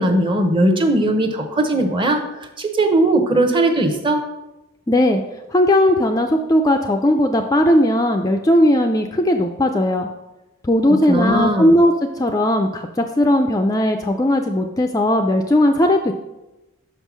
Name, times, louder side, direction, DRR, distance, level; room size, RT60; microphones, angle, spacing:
voice 1, 0.0-2.2 2.6-4.2 10.9-11.7, right 1 dB, 20° right, 5 dB, 0.8 m, -18 dB
voice 2, 4.9-5.2 5.5-10.1 10.6-16.1, left 1 dB, 15° left, 4 dB, 0.3 m, -17 dB
6.1 x 5.5 x 6.1 m, 1.0 s
head